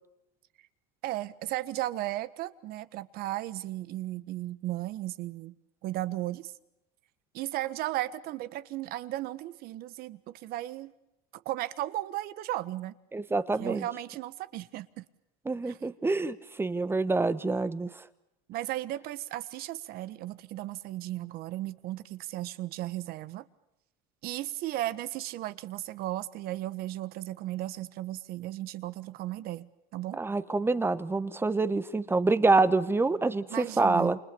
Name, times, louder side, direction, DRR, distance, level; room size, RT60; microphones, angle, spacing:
voice 1, 1.0-5.6 5.8-6.5 7.3-10.9 11.4-12.9 13.6-15.0 15.7-15.8 18.5-23.4 24.2-30.2 33.5-34.1, right 15 dB, 50° right, 1.4 m, -35 dB
voice 2, 13.1-13.9 15.4-17.9 30.2-34.2, right 3 dB, 10° right, 1.3 m, -26 dB
29.0 x 26.5 x 7.0 m
supercardioid pair, 125°, 20 cm